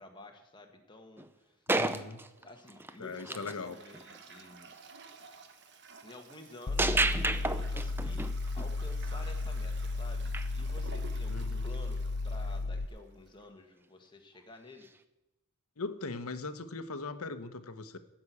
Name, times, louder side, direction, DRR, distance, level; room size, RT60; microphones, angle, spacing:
voice 1, 0.0-1.6 2.4-4.7 6.0-7.0 7.7-12.0 12.2-14.9, left 2 dB, 20° left, 3 dB, 1.5 m, -51 dB
sound 1, 1.2-1.3 1.7-3.6 3.9-4.2 6.8-8.7 10.3-10.5 14.8-14.9, right 2 dB, 10° right, 0.4 m, -31 dB
voice 2, 1.7-2.2 3.0-3.8 11.3-11.7 15.8-18.0, left 3 dB, 75° left, 11 dB, 0.9 m, -40 dB
Toilet flush, 1.7-13.5, right 4 dB, 50° right, 1.1 m, -53 dB
sound 2, 6.7-12.9, left 3 dB, 45° left, 0.5 m, -34 dB
14.5 x 6.1 x 8.4 m, 0.96 s
head